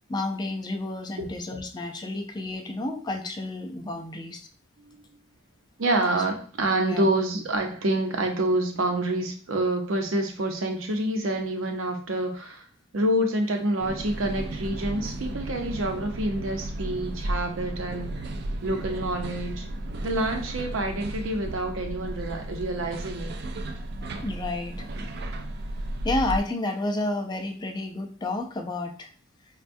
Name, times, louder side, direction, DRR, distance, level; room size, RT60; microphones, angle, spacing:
voice 1, 0.1-4.5 6.9-7.1 20.9-21.0 24.2-24.9 26.0-29.1, left 2 dB, 20° left, 3 dB, 0.3 m, -31 dB
voice 2, 5.8-12.7 12.9-18.1 18.6-19.7 20.0-23.3, right 1 dB, 85° right, 3 dB, 0.7 m, -27 dB
sound 1, 13.8-26.4, right 1 dB, 55° right, 0.3 m, -34 dB
4.4 x 2.2 x 2.5 m, 0.41 s
head